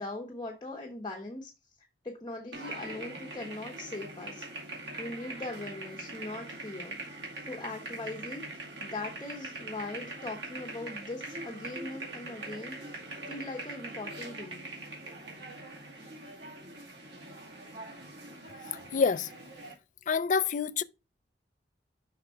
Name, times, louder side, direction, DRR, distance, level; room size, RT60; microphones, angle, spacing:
voice 1, 0.0-1.5 1.8-4.4 5.0-7.0 7.5-8.4 8.8-13.0 13.2-14.8, left 2 dB, 25° left, 1.1 m, -40 dB
sound 1, 2.5-19.7, right 2 dB, 90° right, 2.4 m, -42 dB
voice 2, 18.9-19.3 20.1-20.8, left 5 dB, 45° left, 0.4 m, -27 dB
5.9 x 4.9 x 4.4 m
head